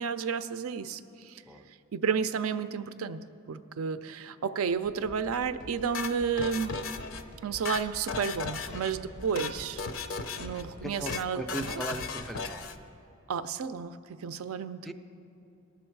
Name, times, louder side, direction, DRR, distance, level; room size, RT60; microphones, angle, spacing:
voice 1, 0.0-1.4 1.9-6.8 7.4-9.8 10.4-11.8 13.3-14.9, right 6 dB, 85° right, 11 dB, 0.4 m, -32 dB
sound 1, 4.7-12.9, equal, 90° left, 1.0 m, -50 dB
sound 2, 5.9-7.2 7.5-8.9 9.2-9.5 9.8-10.6 10.9-11.2 11.5-12.8, left 5 dB, 75° left, 0.6 m, -36 dB
voice 2, 10.8-12.7 14.8-14.9, right 1 dB, ahead, 7 dB, 0.3 m, -38 dB
18.0 x 6.9 x 4.6 m, 2.9 s
head